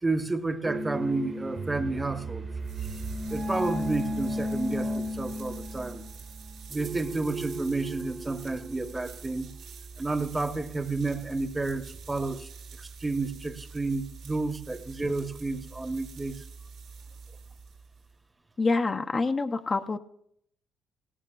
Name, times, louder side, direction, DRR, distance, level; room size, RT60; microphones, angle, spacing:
voice 1, 0.0-2.5 3.3-6.0 6.7-9.5 10.0-12.5 12.8-16.4, right 3 dB, 20° right, 9 dB, 1.0 m, -31 dB
sound 1, 0.6-9.7, equal, 50° right, 1.4 m, -35 dB
sound 2, 2.4-18.2, right 5 dB, 90° right, 2.6 m, -46 dB
voice 2, 18.6-20.0, left 3 dB, 35° left, 6 dB, 0.6 m, -26 dB
19.0 x 17.0 x 2.4 m, 0.71 s
cardioid pair, 90°, 0 cm